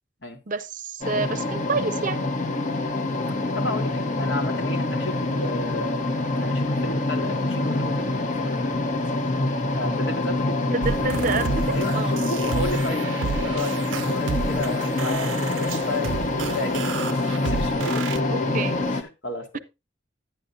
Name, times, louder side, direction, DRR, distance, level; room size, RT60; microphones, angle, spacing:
voice 1, 0.5-2.2 10.7-11.6 11.9-12.3 18.3-18.7 19.5-19.6, right 4 dB, 45° right, 0.6 m, -28 dB
sound 1, 1.0-19.0, left 2 dB, 40° left, 0.8 m, -26 dB
voice 2, 3.5-5.9 6.4-8.6 9.0-10.6 11.7-17.1 17.4-18.3 18.9-19.6, left 2 dB, 75° left, 1.8 m, -33 dB
sound 2, 10.8-18.2, right 5 dB, 90° right, 0.5 m, -32 dB
10.0 x 10.0 x 2.6 m
head